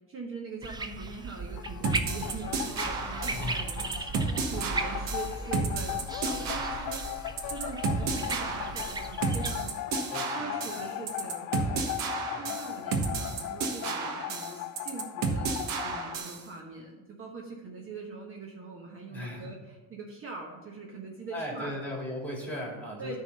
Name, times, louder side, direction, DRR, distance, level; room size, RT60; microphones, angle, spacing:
voice 1, 0.1-9.7 10.3-15.5 15.8-21.8 23.0-23.2, right 4 dB, 40° right, 0 dB, 1.2 m, -42 dB
sound 1, 0.6-9.5, right 2 dB, 15° right, 0.5 m, -37 dB
sound 2, 1.5-16.2, left 14 dB, 60° left, 0.5 m, -38 dB
sound 3, 1.8-16.4, right 4 dB, 70° right, 1.3 m, -32 dB
voice 2, 3.3-3.6 7.9-8.2 9.9-10.6 12.3-12.6 13.1-13.4 19.1-19.5 21.3-23.2, left 1 dB, 5° left, -2 dB, 2.6 m, -38 dB
9.6 x 3.8 x 6.7 m, 1.2 s
cardioid pair, 120°, 34 cm